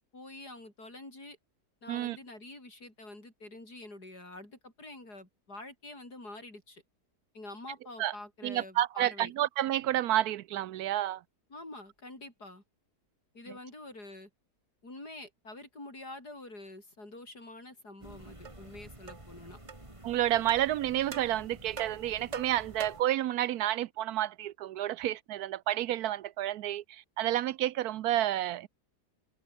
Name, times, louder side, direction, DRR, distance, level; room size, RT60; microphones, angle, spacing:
voice 1, 0.1-1.4 1.8-6.8 7.3-9.3 11.5-12.6 13.3-14.3 14.8-19.6, left 2 dB, 80° left, 8.5 m, -47 dB
voice 2, 8.4-11.2 20.0-28.7, right 13 dB, 75° right, 1.1 m, -30 dB
sound 1, 18.0-23.0, right 1 dB, 20° right, 3.7 m, -51 dB
sound 2, 18.5-18.6 19.1-19.3 19.7-19.8 20.5-20.6 21.1-21.3 21.8-23.2, right 6 dB, 45° right, 1.7 m, -43 dB
omnidirectional pair, 1.7 m